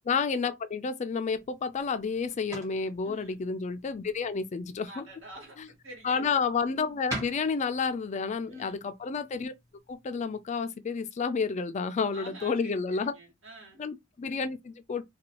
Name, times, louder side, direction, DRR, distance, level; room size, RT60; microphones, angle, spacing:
voice 1, 0.1-5.1 6.0-9.5 9.9-13.1 13.8-15.0, left 5 dB, 35° left, 0.3 m, -30 dB
sound 1, 1.3-10.5, right 1 dB, 15° right, 1.3 m, -46 dB
voice 2, 3.0-3.4 4.9-6.3 8.4-8.9 12.1-13.8, right 1 dB, 65° right, 1.4 m, -48 dB
2.5 x 2.3 x 2.9 m
head